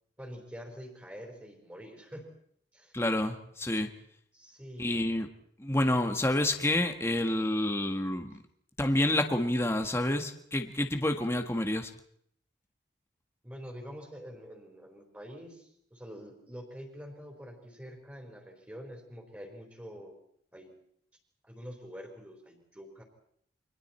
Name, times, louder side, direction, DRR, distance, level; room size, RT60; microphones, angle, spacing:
voice 1, 0.2-2.3 2.7-3.0 4.3-5.0 13.4-20.1 20.5-20.7 21.4-23.0, equal, 10° right, 1 dB, 4.2 m, -46 dB
voice 2, 2.9-3.9 4.8-5.3 5.6-8.3 8.8-11.9, left 1 dB, 15° left, 5 dB, 1.4 m, -28 dB
29.5 x 24.5 x 4.4 m, 0.67 s
head